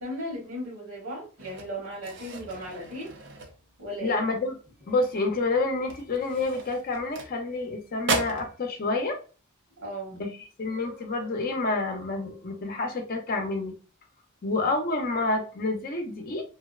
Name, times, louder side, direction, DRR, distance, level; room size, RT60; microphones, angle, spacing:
voice 1, 0.0-3.1 3.8-4.2 9.8-10.2, equal, 80° right, -3 dB, 1.3 m, -36 dB
sound 1, 1.4-4.0 4.4-4.7 5.0-5.2 5.8-7.7 8.0-8.5, right 3 dB, 60° right, 0.5 m, -35 dB
voice 2, 4.0-4.5 4.9-9.2 10.1-10.3 10.6-13.7 14.4-16.4, left 3 dB, 45° left, 3 dB, 0.5 m, -28 dB
2.7 x 2.0 x 2.3 m, 0.37 s
head